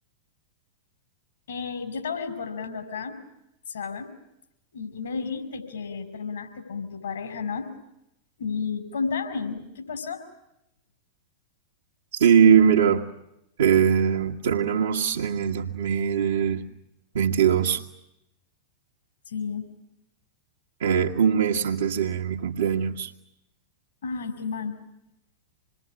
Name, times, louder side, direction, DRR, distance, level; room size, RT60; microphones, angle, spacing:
voice 1, 1.5-3.2 3.7-4.1 4.7-7.7 8.4-10.2 19.3-19.7 24.0-24.8, left 5 dB, 65° left, 8 dB, 5.0 m, -32 dB
voice 2, 12.1-13.1 13.6-16.6 17.1-17.8 20.8-23.1, right 7 dB, 65° right, -2 dB, 1.9 m, -21 dB
27.5 x 21.5 x 9.9 m, 0.84 s
figure-of-eight pair, 90°, 0 cm